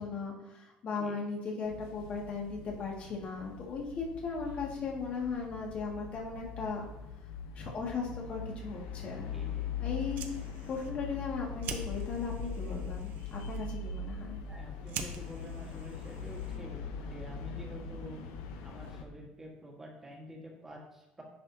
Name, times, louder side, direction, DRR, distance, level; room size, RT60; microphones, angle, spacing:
voice 1, 0.0-6.9 7.6-9.3 9.8-10.3 10.7-14.4, left 4 dB, 40° left, -2 dB, 2.1 m, -37 dB
sound 1, 1.6-19.0, left 6 dB, 90° left, 0.9 m, -41 dB
voice 2, 9.3-9.7 14.5-16.8 17.1-18.2 18.6-21.2, equal, 10° right, -1 dB, 1.6 m, -48 dB
Fire, 9.9-16.8, right 7 dB, 60° right, 0.9 m, -47 dB
10.0 x 6.1 x 2.8 m, 0.90 s
cardioid pair, 135°, 3 cm